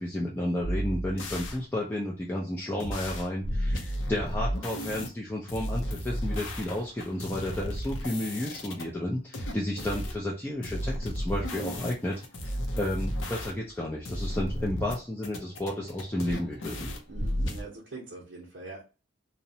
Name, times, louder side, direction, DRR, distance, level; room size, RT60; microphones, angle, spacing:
voice 1, 0.0-16.9, left 1 dB, 10° left, -4 dB, 0.3 m, -32 dB
sound 1, 0.6-1.6 2.8-5.1 5.5-8.8 9.3-10.2 10.6-13.8 14.0-14.9 15.2-17.6, equal, 85° left, 0.6 m, -33 dB
voice 2, 17.1-18.8, right 3 dB, 60° right, -4 dB, 0.6 m, -43 dB
2.7 x 2.0 x 2.6 m, 0.33 s
head